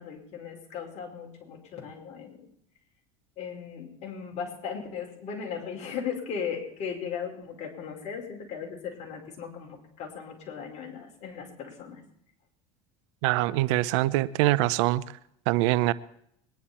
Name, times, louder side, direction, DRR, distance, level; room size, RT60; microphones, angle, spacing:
voice 1, 0.0-2.5 3.4-12.0, left 7 dB, 50° left, 5.0 m, -37 dB
voice 2, 13.2-15.0 15.5-15.9, right 17 dB, 80° right, 0.7 m, -24 dB
23.0 x 11.0 x 4.3 m
supercardioid pair, 115°, 15 cm